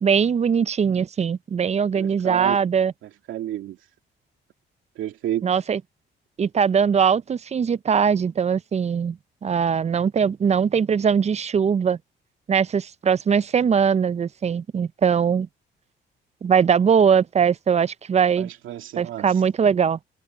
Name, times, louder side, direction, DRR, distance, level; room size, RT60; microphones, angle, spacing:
voice 1, 0.0-2.9 5.4-5.8 6.4-12.0 12.5-15.5 16.4-18.5 19.0-20.0, right 7 dB, 35° right, 0.5 m, -21 dB
voice 2, 1.9-2.6 3.0-3.8 5.0-5.5 18.4-19.3, right 12 dB, 85° right, 2.5 m, -31 dB
cardioid pair, 90°, 20 cm